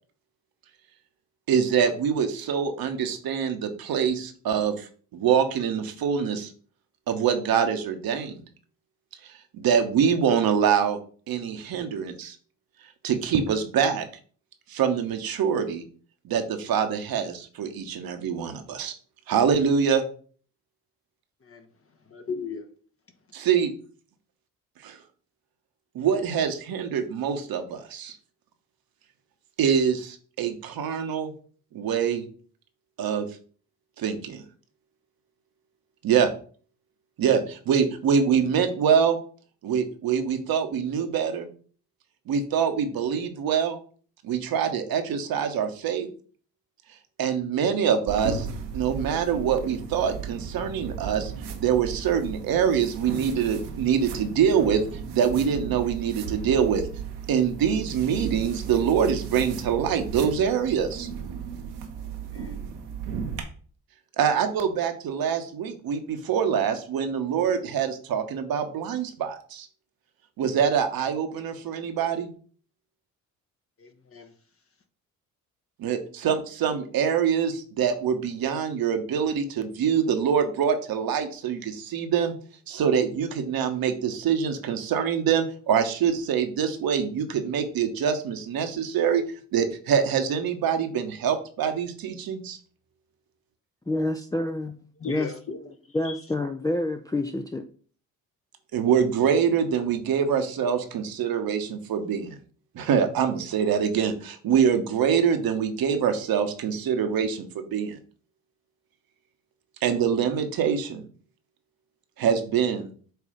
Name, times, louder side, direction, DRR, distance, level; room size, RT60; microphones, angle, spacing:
voice 1, 1.5-6.5 7.1-8.4 9.5-11.0 11.3-12.4 13.0-14.0 14.7-15.8 16.2-18.9 19.3-20.0 23.3-23.7 24.8-25.0 25.9-28.1 29.6-31.3 31.7-32.3 33.0-33.3 34.0-34.4 36.0-36.3 37.2-39.2 39.6-41.5 42.3-43.8 44.2-46.1 47.2-48.5 48.7-54.8 55.1-56.8 57.3-61.1 64.2-69.7 70.4-72.3 75.8-82.4 82.7-89.2 89.5-92.6 98.7-102.4 102.7-108.0 109.8-111.0 112.2-112.9, right 7 dB, 60° right, 1.1 m, -25 dB
voice 2, 22.1-22.6 62.3-62.7 73.8-74.3 95.0-95.6 96.0-96.2, left 4 dB, 35° left, 1.2 m, -36 dB
sound 1, 48.1-63.4, right 6 dB, 80° right, 1.2 m, -35 dB
voice 3, 93.9-94.8 95.1-95.3 95.9-97.6, left 2 dB, 10° left, 0.6 m, -28 dB
7.9 x 2.7 x 5.0 m
hypercardioid pair, 50°, 40 cm